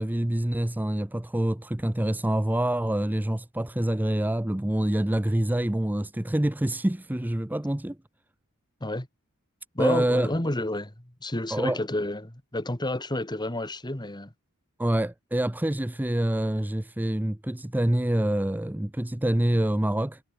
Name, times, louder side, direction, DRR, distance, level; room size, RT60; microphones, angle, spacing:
voice 1, 0.0-8.0 9.8-10.3 11.5-11.8 14.8-20.2, right 1 dB, 10° right, 0.5 m, -26 dB
voice 2, 9.7-14.3, left 1 dB, 20° left, 1.9 m, -30 dB
head